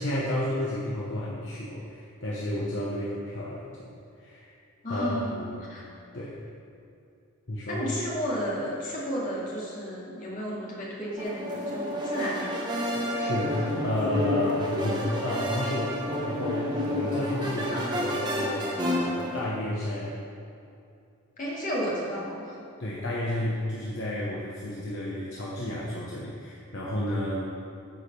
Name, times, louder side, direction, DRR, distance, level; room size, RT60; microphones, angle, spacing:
voice 1, 0.0-3.9 4.2-4.5 4.9-5.7 6.1-6.4 7.5-7.8 12.9-18.7 19.0-20.2 22.8-27.4, left 1 dB, 55° left, -5 dB, 1.0 m, -31 dB
voice 2, 4.8-5.4 5.7-5.8 7.7-12.6 17.7-17.8 21.4-22.5, equal, 35° left, -6 dB, 2.2 m, -32 dB
sound 1, 11.2-19.5, left 1 dB, 20° right, 1.0 m, -30 dB
9.5 x 4.9 x 6.8 m, 2.6 s
head